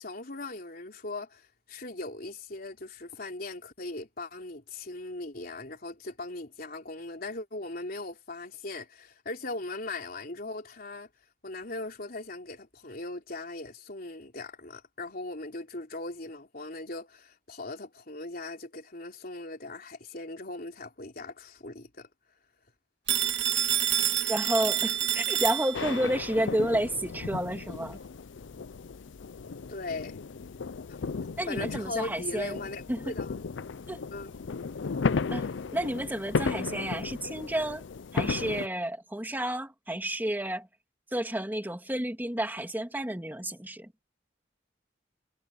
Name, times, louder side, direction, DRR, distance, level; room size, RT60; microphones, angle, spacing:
voice 1, 0.0-11.1 11.4-22.1 29.7-30.2 30.9-31.0 31.5-33.5 34.1-34.3 35.4-35.6, left 2 dB, 55° left, 3.6 m, -39 dB
Telephone, 23.1-26.1, right 10 dB, 65° right, 1.7 m, -28 dB
voice 2, 24.3-28.0 31.4-32.6 32.9-33.0 33.9-34.0 35.3-37.8 38.1-40.7 41.1-43.9, right 1 dB, 10° right, 2.8 m, -31 dB
sound 1, 25.7-38.7, left 4 dB, 85° left, 0.5 m, -35 dB
head